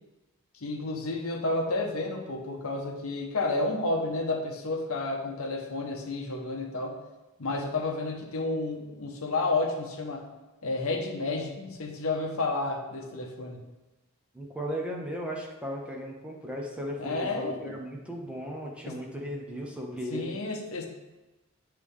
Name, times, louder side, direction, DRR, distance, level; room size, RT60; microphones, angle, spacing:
voice 1, 0.6-7.0 7.4-10.3 10.6-13.6 17.0-17.7 18.9-19.0 20.1-20.9, left 2 dB, 70° left, 2 dB, 0.8 m, -31 dB
voice 2, 14.3-20.4, equal, 5° right, -1 dB, 0.8 m, -36 dB
8.1 x 3.3 x 3.6 m, 1.1 s
head